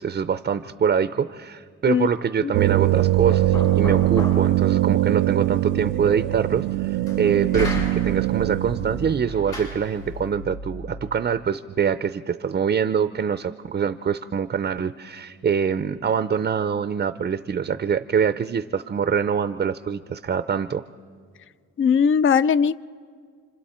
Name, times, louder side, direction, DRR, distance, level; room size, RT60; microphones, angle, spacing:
voice 1, 0.0-20.8, right 7 dB, 30° right, 11 dB, 0.5 m, -24 dB
sound 1, 2.5-9.2, right 16 dB, 80° right, 0.5 m, -22 dB
Knock, 2.6-10.5, left 1 dB, 85° left, 7.1 m, -34 dB
voice 2, 21.8-22.8, left 7 dB, 40° left, 16 dB, 0.5 m, -19 dB
29.0 x 26.0 x 4.4 m, 2.1 s
cardioid pair, 90°, 30 cm